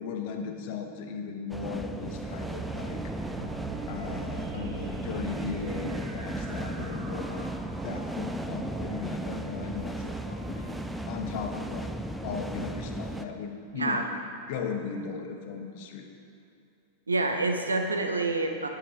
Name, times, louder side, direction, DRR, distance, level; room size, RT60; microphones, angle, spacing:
voice 1, 0.0-3.1 3.9-7.5 7.8-10.7 11.1-11.9 12.2-14.1 14.5-16.1, left 5 dB, 50° left, 4 dB, 1.0 m, -37 dB
sound 1, 1.5-13.2, right 1 dB, 5° right, 0.4 m, -36 dB
sound 2, 1.7-11.9, right 5 dB, 45° right, 1.3 m, -43 dB
voice 2, 13.7-14.0 17.1-18.7, right 2 dB, 75° right, 4 dB, 0.8 m, -27 dB
11.0 x 6.2 x 5.1 m, 2.5 s
figure-of-eight pair, 90°, 0 cm